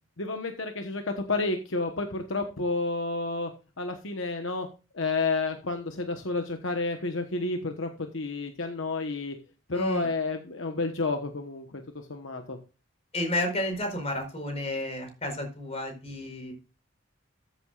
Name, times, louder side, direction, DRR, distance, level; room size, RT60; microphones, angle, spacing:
voice 1, 0.2-3.5 3.8-4.7 4.9-9.4 9.7-12.6, left 3 dB, 65° left, 5 dB, 1.2 m, -30 dB
voice 2, 9.7-10.1 13.1-16.5, left 1 dB, 30° left, 4 dB, 4.6 m, -31 dB
14.0 x 7.9 x 2.5 m, 0.31 s
head